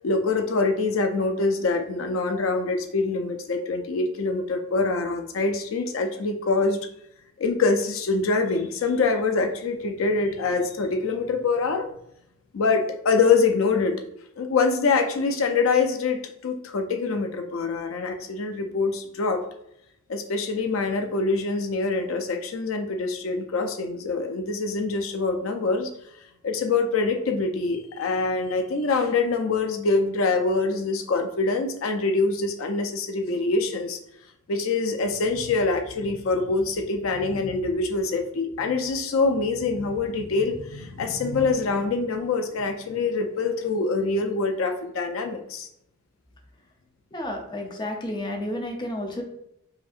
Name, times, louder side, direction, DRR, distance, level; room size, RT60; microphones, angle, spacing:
voice 1, 0.0-6.8 7.4-11.9 12.5-14.0 14.4-19.4 20.1-25.9 26.4-34.0 34.5-45.7, left 3 dB, 85° left, 6 dB, 0.5 m, -25 dB
voice 2, 47.1-49.2, left 1 dB, 20° left, 2 dB, 0.6 m, -31 dB
5.0 x 2.7 x 2.4 m, 0.77 s
head